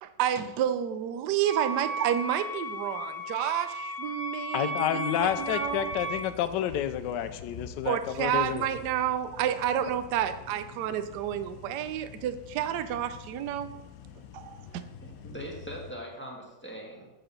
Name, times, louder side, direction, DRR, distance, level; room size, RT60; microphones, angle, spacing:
voice 1, 0.0-5.9 7.8-13.7 14.3-14.8, right 10 dB, 70° right, 10 dB, 1.1 m, -30 dB
Wind instrument woodwind instrument, 1.4-6.4, equal, 40° left, 0.6 m, -35 dB
voice 2, 4.5-8.7, left 10 dB, 70° left, 9 dB, 1.1 m, -29 dB
sound 1, 5.2-15.9, left 8 dB, 90° left, 0.7 m, -47 dB
voice 3, 15.0-17.1, equal, 5° left, -1 dB, 1.3 m, -41 dB
7.9 x 5.0 x 6.8 m, 0.97 s
omnidirectional pair, 2.2 m